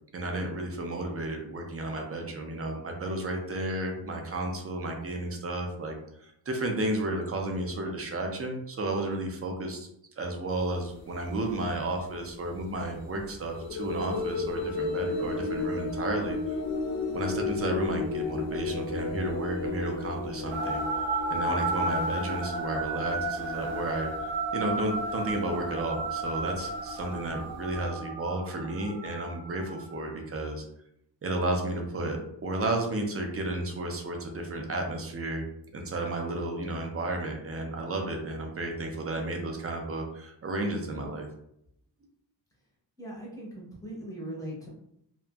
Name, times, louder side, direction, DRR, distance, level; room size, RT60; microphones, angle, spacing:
voice 1, 0.1-9.9 10.2-16.6 17.1-20.8 21.3-24.1 24.5-30.6 31.2-35.4 35.7-41.3, right 2 dB, 35° right, 2 dB, 0.4 m, -32 dB
sound 1, 11.3-11.4 13.3-27.8, left 3 dB, 55° left, 0.6 m, -35 dB
sound 2, 20.5-30.0, right 2 dB, 80° right, 0.6 m, -33 dB
voice 2, 43.0-44.7, right 1 dB, 10° left, -4 dB, 0.7 m, -39 dB
2.8 x 2.4 x 2.3 m, 0.74 s
wide cardioid pair, 160°, 46 cm